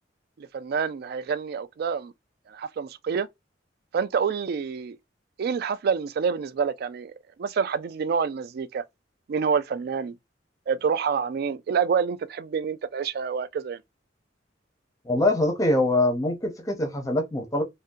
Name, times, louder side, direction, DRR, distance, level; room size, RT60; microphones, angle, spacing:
voice 1, 0.4-2.1 2.5-3.3 3.9-5.0 5.4-7.1 7.4-8.8 9.3-10.2 10.7-13.8, right 6 dB, 60° right, 0.3 m, -27 dB
voice 2, 15.1-17.6, left 1 dB, 20° left, 0.6 m, -23 dB
2.6 x 2.1 x 3.6 m
head